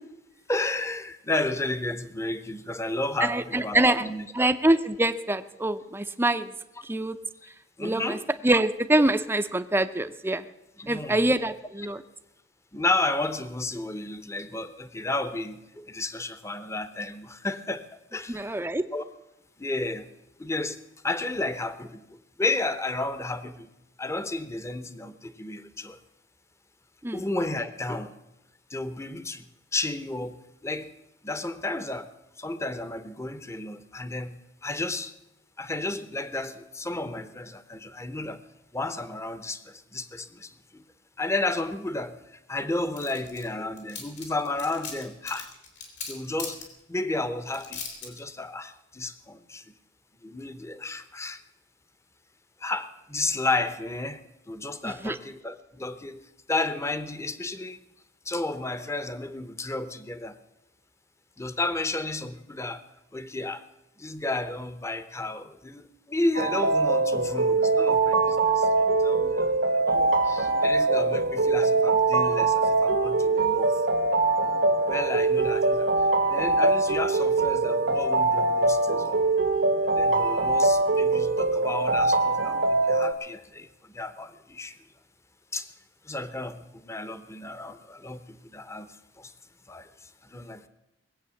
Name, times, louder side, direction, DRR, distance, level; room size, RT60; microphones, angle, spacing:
voice 1, 0.5-4.5 7.4-7.5 7.8-8.3 10.8-11.5 11.8-11.9 12.7-18.6 18.9-19.1 19.6-20.1 20.4-23.7 24.0-26.0 27.1-28.1 28.7-29.4 29.7-30.9 31.2-35.1 35.6-38.4 38.7-40.8 41.2-45.5 46.1-46.6 46.9-49.7 50.2-51.4 52.6-57.8 58.2-60.4 61.4-62.8 63.1-63.7 64.0-73.8 74.9-75.9 76.3-79.2 79.8-84.8 85.5-85.7 86.0-89.3 89.7-90.7, left 2 dB, 15° left, 0.9 m, -32 dB
voice 2, 3.2-4.0 4.4-6.5 6.9-7.2 7.8-8.2 8.4-10.4 10.9-12.0 18.3-18.8 27.0-27.2 55.0-55.1, right 1 dB, 15° right, 0.6 m, -24 dB
sound 1, 43.0-43.4 43.8-46.6 47.5-48.2, left 6 dB, 75° left, 3.8 m, -38 dB
sound 2, 66.3-83.1, right 3 dB, 85° right, 1.7 m, -23 dB
20.0 x 8.2 x 7.1 m
head